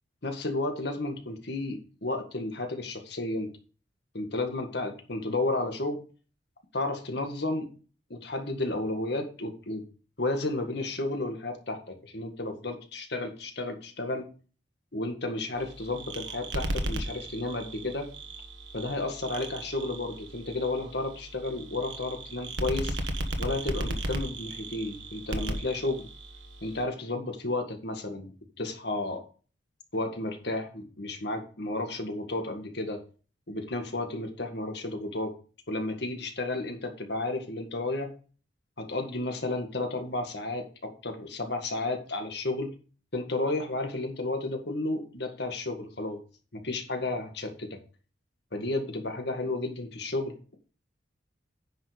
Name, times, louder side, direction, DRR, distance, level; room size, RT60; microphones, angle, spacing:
voice 1, 0.2-3.5 4.1-6.0 6.7-7.7 8.1-9.8 10.2-14.3 14.9-18.1 18.7-23.0 23.4-26.1 26.6-29.2 29.9-33.0 33.5-35.3 35.7-38.1 38.8-42.7 43.1-46.2 46.5-47.8 48.5-50.5, left 2 dB, 60° left, 5 dB, 1.8 m, -32 dB
sound 1, 15.6-26.8, right 1 dB, 80° right, 1.4 m, -36 dB
10.0 x 5.6 x 5.1 m, 0.39 s
head